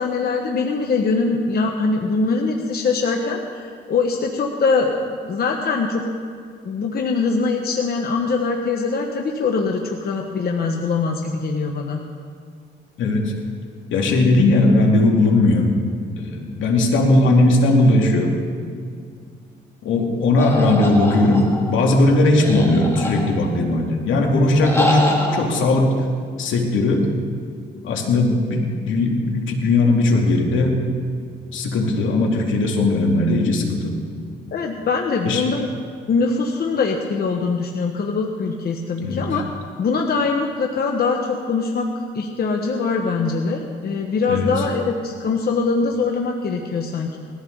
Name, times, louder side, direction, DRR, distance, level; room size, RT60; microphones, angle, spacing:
voice 1, 0.0-6.0 6.6-12.0 34.5-35.7 36.1-39.4 39.8-41.9 42.1-47.2, left 4 dB, 50° left, 2 dB, 1.3 m, -22 dB
voice 2, 13.0-13.3 13.9-15.7 16.2-18.3 19.8-25.9 26.4-27.1 27.8-30.8 31.5-34.0 35.3-35.4 39.0-39.3 44.3-44.5, left 2 dB, 75° left, 1 dB, 2.5 m, -18 dB
sound 1, 20.4-21.7 22.4-23.5 24.6-25.4, equal, 15° left, 3.3 m, -24 dB
20.0 x 14.5 x 4.0 m, 2.1 s
cardioid pair, 90°, 20 cm